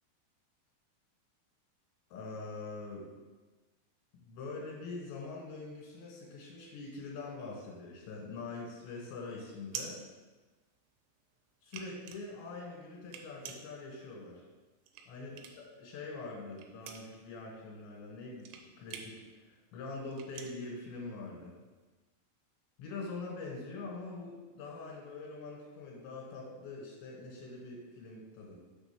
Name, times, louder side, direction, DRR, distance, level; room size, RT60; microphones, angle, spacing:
voice 1, 2.1-3.0 4.2-10.0 11.6-14.4 15.1-18.5 18.8-19.2 19.7-21.5 22.8-28.6, left 3 dB, 90° left, -2 dB, 3.4 m, -44 dB
sound 1, 8.4-11.0 11.4-15.8 16.1-21.6, right 7 dB, 85° right, 2.8 m, -47 dB
7.0 x 3.5 x 5.9 m, 1.2 s
omnidirectional pair, 4.9 m